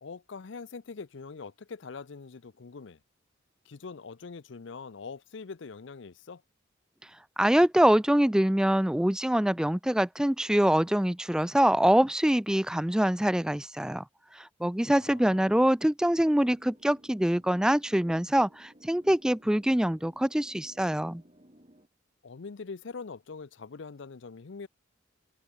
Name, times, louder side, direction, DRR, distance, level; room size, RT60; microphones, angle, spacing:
voice 1, 0.0-3.0 3.7-6.4 15.0-15.7 22.2-24.7, left 4 dB, 65° left, 0.6 m, -43 dB
voice 2, 7.4-14.0 14.4-21.2, right 1 dB, 5° right, 0.3 m, -24 dB
sound 1, 16.2-21.9, equal, 30° right, 8.0 m, -57 dB
head